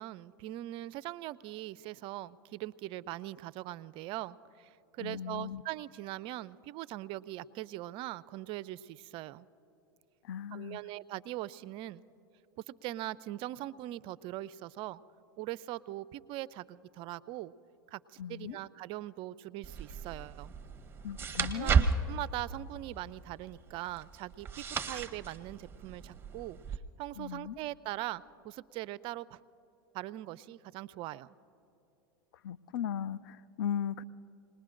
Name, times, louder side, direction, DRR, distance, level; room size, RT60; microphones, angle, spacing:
voice 1, 0.0-9.5 10.5-12.0 12.7-15.0 15.4-17.5 17.9-20.5 21.4-29.4 29.9-31.4, right 16 dB, 50° right, 18 dB, 0.4 m, -41 dB
voice 2, 5.0-5.6 10.2-10.8 18.2-18.6 21.0-21.9 27.2-27.6 32.4-34.0, left 9 dB, 75° left, 16 dB, 0.5 m, -37 dB
sound 1, 19.6-26.8, right 5 dB, 20° right, 1.0 m, -34 dB
27.5 x 20.0 x 2.5 m, 2.9 s
hypercardioid pair, 95°, 12 cm